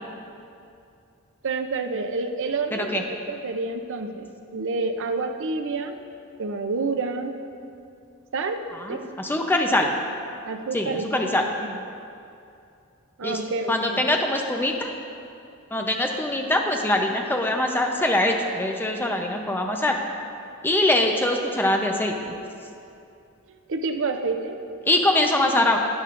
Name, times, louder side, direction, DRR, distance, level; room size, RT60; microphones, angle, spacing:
voice 1, 1.4-6.0 6.4-7.4 8.3-9.1 10.4-11.8 13.2-14.0 23.7-24.6, right 3 dB, 60° right, 6 dB, 0.6 m, -29 dB
voice 2, 2.7-3.0 8.7-9.9 10.7-11.5 13.2-13.4 13.7-14.9 15.7-20.0 20.6-22.3 24.8-25.8, left 1 dB, 10° left, 2 dB, 0.6 m, -23 dB
12.5 x 9.5 x 2.5 m, 2.6 s
head